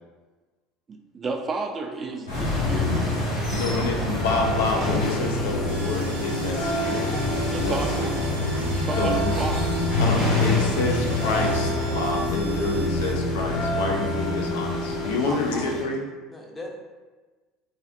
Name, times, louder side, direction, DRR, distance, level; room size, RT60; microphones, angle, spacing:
voice 1, 0.9-2.9 7.5-8.2 8.7-9.8 15.3-15.7, right 3 dB, 30° right, 4 dB, 0.3 m, -32 dB
voice 2, 1.9-2.3 2.6-3.0 3.4-4.4 16.3-16.8, equal, 15° left, 0 dB, 0.6 m, -39 dB
sound 1, 2.3-15.2, left 1 dB, 85° left, 0.9 m, -27 dB
sound 2, 2.3-15.8, left 2 dB, 45° left, 1.3 m, -29 dB
voice 3, 3.5-7.8 8.9-9.3 10.0-16.0, left 3 dB, 70° left, 2 dB, 0.3 m, -28 dB
sound 3, 5.7-13.1, right 3 dB, 75° right, 0.7 m, -41 dB
3.3 x 2.5 x 2.5 m, 1.3 s
figure-of-eight pair, 70°, 0 cm